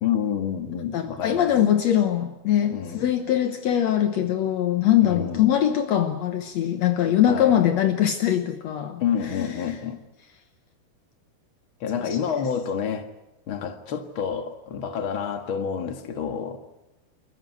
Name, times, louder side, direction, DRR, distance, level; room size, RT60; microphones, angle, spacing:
voice 1, 0.0-1.5 2.7-3.1 5.0-5.4 7.3-7.6 9.0-10.0 11.8-13.1 13.5-16.6, left 7 dB, 50° left, 7 dB, 1.6 m, -28 dB
voice 2, 0.9-9.0 9.3-9.8, left 11 dB, 80° left, 7 dB, 1.5 m, -22 dB
29.0 x 14.0 x 9.3 m, 0.95 s
omnidirectional pair, 4.7 m